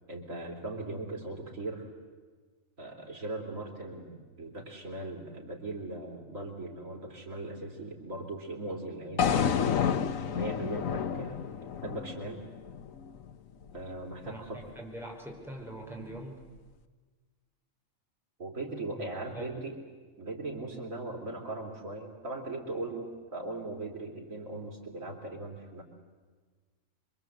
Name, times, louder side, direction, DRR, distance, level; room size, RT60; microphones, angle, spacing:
voice 1, 0.1-1.9 2.8-11.4 11.8-12.4 13.7-14.6 18.4-19.8 20.2-25.8, right 2 dB, 90° right, 1 dB, 3.7 m, -39 dB
sound 1, 9.2-13.3, left 7 dB, 90° left, 1.4 m, -30 dB
voice 2, 14.2-16.4 18.9-19.6, right 1 dB, ahead, -1 dB, 4.6 m, -43 dB
26.0 x 24.0 x 8.0 m, 1.4 s
omnidirectional pair, 1.4 m